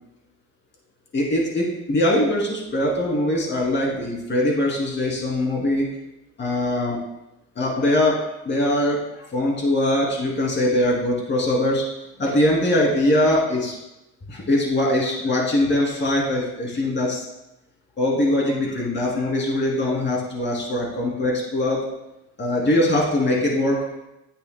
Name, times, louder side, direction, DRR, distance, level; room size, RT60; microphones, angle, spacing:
voice 1, 1.1-5.9 6.4-7.0 7.5-8.2 8.4-11.8 12.2-13.7 14.3-17.2 18.0-21.8 22.4-23.9, left 1 dB, 40° left, -2 dB, 3.1 m, -22 dB
9.9 x 8.2 x 2.3 m, 0.94 s
cardioid pair, 90°, 30 cm